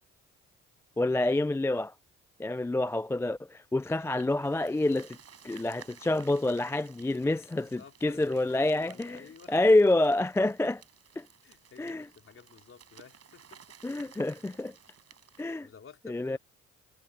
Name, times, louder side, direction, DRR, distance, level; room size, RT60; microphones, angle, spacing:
voice 1, 1.0-1.9 2.4-5.2 5.4-9.2 9.5-10.8 11.2-11.3 11.8-12.1 13.8-14.7 15.4-15.7 16.1-16.4, left 2 dB, 10° left, 0.4 m, -27 dB
sound 1, 4.1-15.5, right 8 dB, 55° right, 7.4 m, -55 dB
voice 2, 7.5-9.6 11.4-13.8 15.6-16.4, left 6 dB, 45° left, 4.0 m, -52 dB
cardioid pair, 90°, 30 cm